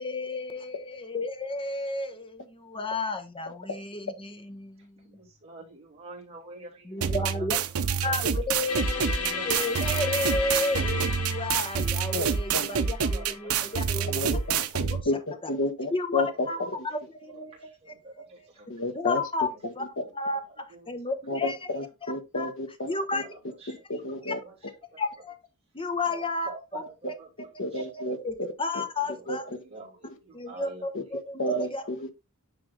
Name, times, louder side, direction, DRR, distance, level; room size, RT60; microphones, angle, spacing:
voice 1, 0.0-5.1 6.8-7.6 7.9-14.4 14.9-15.0 15.4-15.5 15.9-18.5 18.9-19.5 19.7-19.9 20.1-21.7 22.0-22.5 22.9-23.3 24.0-24.4 25.0-25.4 25.7-27.1 27.7-29.4 30.3-31.8, left 2 dB, 25° left, 1.1 m, -33 dB
voice 2, 5.2-7.6 8.0-8.1 9.0-9.5 9.9-10.0 12.8-13.5 14.0-14.1 17.9-18.7 23.6-23.7 24.9-25.0 26.1-26.8 27.2-27.3 27.7-27.8 29.7-30.8 31.5-31.6, right 2 dB, 30° right, 3.0 m, -45 dB
sound 1, 7.0-15.0, right 6 dB, 75° right, 0.7 m, -27 dB
sound 2, 8.7-14.6, left 5 dB, 90° left, 1.3 m, -35 dB
voice 3, 12.1-12.9 14.0-16.5 18.7-19.2 21.3-23.2 23.7-24.4 27.0-27.1 27.6-28.2 28.7-28.8 29.3-29.4 30.9-31.0 31.4-32.1, left 2 dB, 60° left, 1.3 m, -31 dB
9.6 x 3.5 x 3.6 m
head